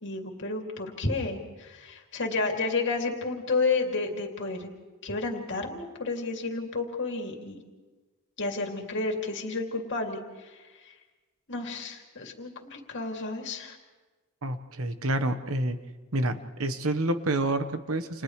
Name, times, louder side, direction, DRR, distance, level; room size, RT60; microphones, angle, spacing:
voice 1, 0.0-4.7 5.0-7.6 8.4-10.5 11.5-13.8, left 3 dB, 55° left, 2 dB, 2.7 m, -31 dB
voice 2, 14.4-15.8 16.1-18.2, right 1 dB, 70° right, 9 dB, 1.3 m, -28 dB
30.0 x 29.0 x 3.3 m, 1.3 s
head